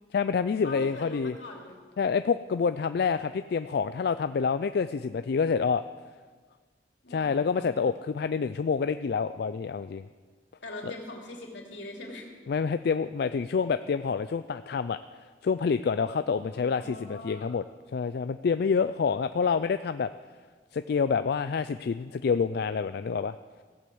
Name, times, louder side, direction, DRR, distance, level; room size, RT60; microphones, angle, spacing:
voice 1, 0.1-1.3 2.0-5.8 7.1-10.1 10.8-10.9 12.5-17.6 17.9-20.1 20.7-23.4, left 5 dB, 60° left, 11 dB, 0.4 m, -27 dB
voice 2, 0.6-1.8 7.0-7.7 10.6-12.3 16.3-17.5, left 2 dB, 85° left, 0 dB, 3.0 m, -42 dB
15.5 x 8.7 x 7.7 m, 1.5 s
head